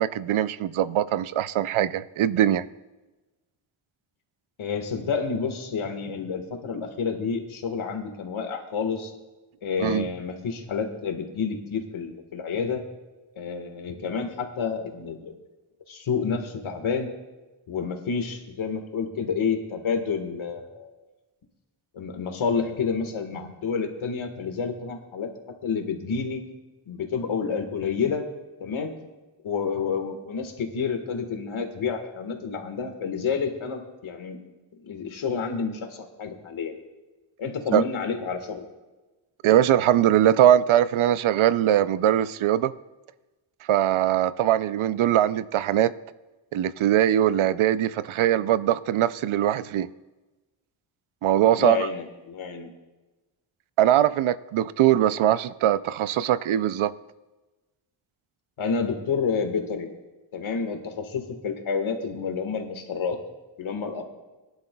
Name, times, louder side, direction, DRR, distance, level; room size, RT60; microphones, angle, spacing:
voice 1, 0.0-2.6 9.8-10.1 37.7-37.8 39.4-42.7 43.7-45.9 46.5-49.9 51.2-51.9 53.8-56.9, right 11 dB, 90° right, 16 dB, 0.6 m, -21 dB
voice 2, 4.6-9.1 9.6-12.8 13.4-15.3 15.9-17.1 17.7-20.9 21.9-25.3 25.6-26.4 26.9-28.2 28.6-28.9 29.4-34.4 34.8-36.8 37.4-38.7 51.5-52.7 58.6-59.9 60.3-63.2 63.6-64.0, left 5 dB, 85° left, 5 dB, 1.6 m, -29 dB
21.5 x 11.5 x 2.3 m, 1.1 s
wide cardioid pair, 150°, 47 cm